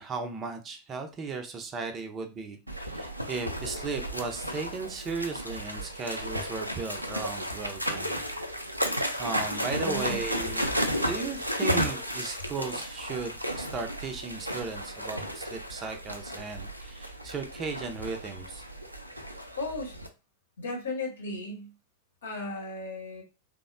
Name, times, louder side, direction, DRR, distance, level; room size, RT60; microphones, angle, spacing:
voice 1, 0.0-8.2 8.8-18.6, right 4 dB, 25° right, 6 dB, 0.5 m, -36 dB
sound 1, 2.7-20.1, equal, 90° right, 0.4 m, -33 dB
voice 2, 9.8-10.2 19.6-20.0 20.6-21.7 22.2-23.2, left 2 dB, 70° left, 1 dB, 0.9 m, -35 dB
3.3 x 2.0 x 2.5 m, 0.30 s
figure-of-eight pair, 90°, 0 cm